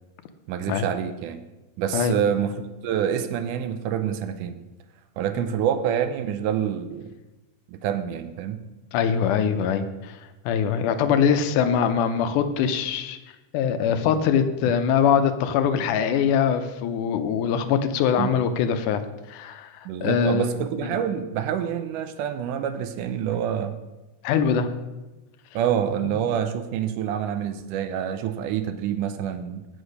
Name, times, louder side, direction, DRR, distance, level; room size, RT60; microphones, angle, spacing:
voice 1, 0.5-1.4 1.8-4.6 5.2-7.1 7.7-8.6 18.2-18.4 19.9-23.8 25.5-29.7, right 9 dB, 85° right, 9 dB, 2.2 m, -27 dB
voice 2, 8.9-10.2 10.5-13.2 13.5-19.0 19.3-20.5 24.2-24.7, left 7 dB, 80° left, 8 dB, 2.2 m, -22 dB
8.2 x 7.9 x 5.2 m, 1.1 s
omnidirectional pair, 3.6 m